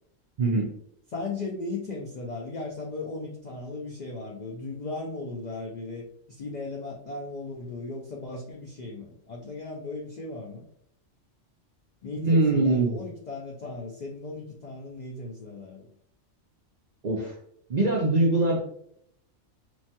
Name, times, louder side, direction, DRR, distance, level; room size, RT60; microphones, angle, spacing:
voice 1, 0.4-0.7 12.2-13.0 17.0-17.3 17.7-18.6, right 2 dB, 60° right, -3 dB, 0.4 m, -22 dB
voice 2, 1.1-10.6 12.0-15.9, left 3 dB, 85° left, -1 dB, 0.3 m, -37 dB
3.1 x 2.2 x 2.7 m, 0.70 s
omnidirectional pair, 1.3 m